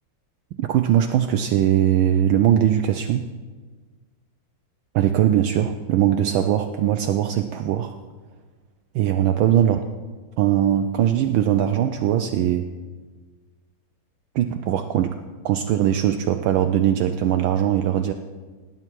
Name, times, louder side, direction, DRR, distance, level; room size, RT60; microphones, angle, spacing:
voice 1, 0.6-3.3 4.9-8.0 8.9-9.8 10.4-12.7 14.3-15.2 15.4-18.1, right 10 dB, 75° right, 6 dB, 1.3 m, -20 dB
18.5 x 9.3 x 4.6 m, 1.4 s
omnidirectional pair, 2.3 m